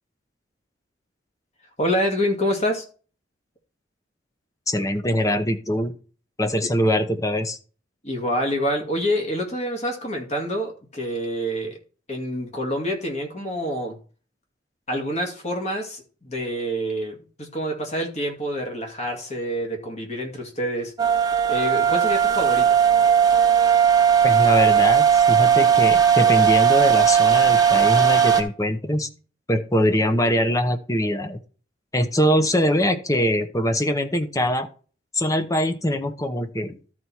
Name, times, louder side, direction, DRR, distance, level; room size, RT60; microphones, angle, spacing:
voice 1, 1.8-2.8 6.6-6.7 8.0-11.8 12.1-14.0 14.9-20.9 21.5-22.8, equal, 40° left, 2 dB, 2.3 m, -27 dB
voice 2, 4.7-5.9 6.4-7.6 24.2-29.1 29.5-31.4 31.9-34.7 35.1-36.7, equal, 20° left, 9 dB, 0.8 m, -22 dB
sound 1, 21.0-28.4, right 8 dB, 20° right, 1.0 m, -17 dB
13.0 x 4.6 x 4.2 m, 0.38 s
head